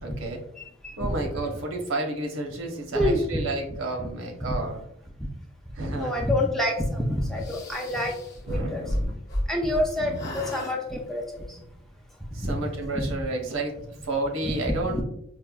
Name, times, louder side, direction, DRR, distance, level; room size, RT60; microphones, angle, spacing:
voice 1, 0.0-0.4 1.0-4.8 5.7-6.2 7.8-8.2 8.5-9.1 10.0-10.4 12.3-13.8 14.0-15.0, right 2 dB, 80° right, 2 dB, 0.8 m, -31 dB
voice 2, 0.6-1.1 2.9-3.4 4.0-4.1 5.9-8.1 8.5-8.8 9.5-11.6 12.4-12.5 13.0-13.1 14.4-14.6, left 1 dB, ahead, 0 dB, 0.3 m, -27 dB
sound 1, 7.4-9.9 10.1-10.8, equal, 50° left, 0.7 m, -32 dB
4.5 x 2.0 x 2.2 m, 0.75 s
head